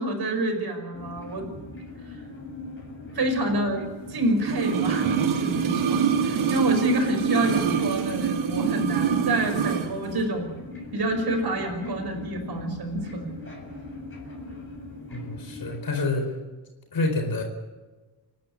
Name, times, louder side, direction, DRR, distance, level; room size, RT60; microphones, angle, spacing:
voice 1, 0.0-1.5 2.0-2.2 3.1-10.5 10.9-13.4, right 1 dB, 50° right, 5 dB, 5.6 m, -27 dB
sound 1, 0.9-15.8, left 2 dB, 25° left, 7.5 m, -41 dB
sound 2, 4.4-9.9 10.2-10.3, right 7 dB, 90° right, 2.3 m, -25 dB
voice 2, 15.1-16.4 16.9-17.4, left 2 dB, 50° left, 3 dB, 4.5 m, -27 dB
29.5 x 12.0 x 8.9 m, 1.3 s
wide cardioid pair, 135°, 47 cm